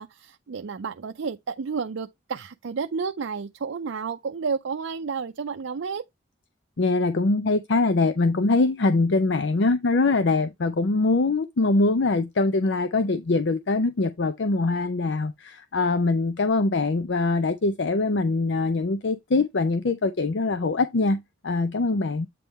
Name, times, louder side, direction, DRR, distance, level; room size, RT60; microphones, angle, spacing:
voice 1, 0.0-6.0, right 5 dB, 85° right, 0.5 m, -31 dB
voice 2, 6.8-22.3, left 3 dB, 65° left, 0.6 m, -23 dB
8.4 x 3.6 x 4.1 m
head